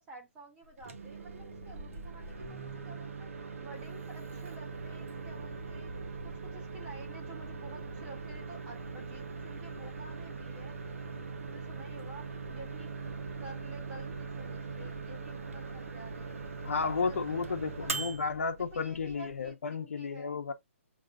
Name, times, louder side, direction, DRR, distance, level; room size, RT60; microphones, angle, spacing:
voice 1, 0.0-5.9 6.2-10.8 11.1-12.9 13.4-16.4 17.0-18.1 18.7-20.4, right 2 dB, 10° right, 0.9 m, -51 dB
Microwave oven, 0.7-19.5, right 4 dB, 70° right, 1.3 m, -41 dB
voice 2, 16.6-20.5, left 5 dB, 70° left, 0.9 m, -33 dB
6.4 x 3.1 x 2.5 m
hypercardioid pair, 180°, 7 cm